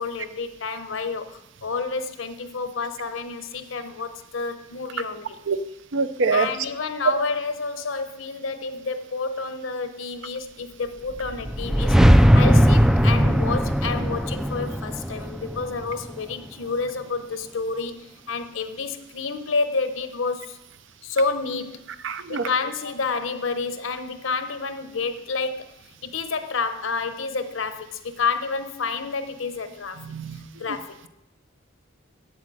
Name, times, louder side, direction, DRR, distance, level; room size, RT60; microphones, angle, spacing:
voice 1, 0.0-5.4 6.3-20.6 21.0-21.9 22.3-25.7 26.0-30.0 30.6-31.1, left 4 dB, 70° left, 10 dB, 0.9 m, -29 dB
voice 2, 5.9-6.5 22.0-22.5 30.0-30.4, right 4 dB, 65° right, 12 dB, 0.6 m, -24 dB
sound 1, 11.2-16.3, equal, ahead, 0.3 m, -19 dB
8.0 x 7.6 x 8.7 m, 0.87 s
head